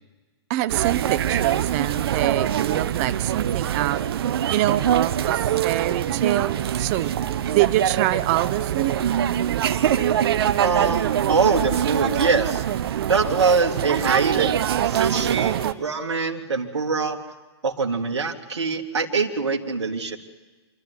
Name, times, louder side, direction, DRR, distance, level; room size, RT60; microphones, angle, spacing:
voice 1, 0.5-4.0 4.5-7.1 7.5-8.9, right 15 dB, 35° right, 14 dB, 1.0 m, -25 dB
sound 1, 0.7-15.7, right 10 dB, 60° right, 1.1 m, -24 dB
voice 2, 10.6-12.6 13.1-14.6 14.8-17.2 17.6-20.2, right 4 dB, 85° right, 3 dB, 2.2 m, -23 dB
27.0 x 13.0 x 9.6 m, 1.3 s
hypercardioid pair, 135°, 14 cm